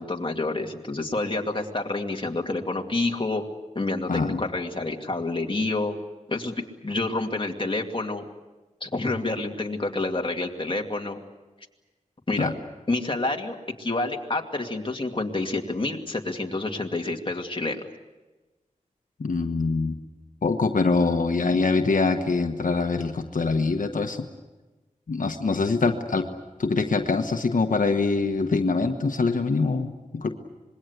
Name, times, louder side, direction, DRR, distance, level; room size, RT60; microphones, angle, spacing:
voice 1, 0.0-3.4 3.7-6.0 6.3-6.6 6.8-8.2 8.8-11.2 12.3-12.5 12.9-17.8, left 2 dB, 40° left, 2 dB, 2.4 m, -28 dB
voice 2, 4.1-4.4 12.4-12.5 19.2-19.9 20.4-24.2 25.1-26.3 26.6-30.3, left 4 dB, 85° left, 5 dB, 1.2 m, -24 dB
26.5 x 21.5 x 8.2 m, 1.2 s
wide cardioid pair, 80°, 13 cm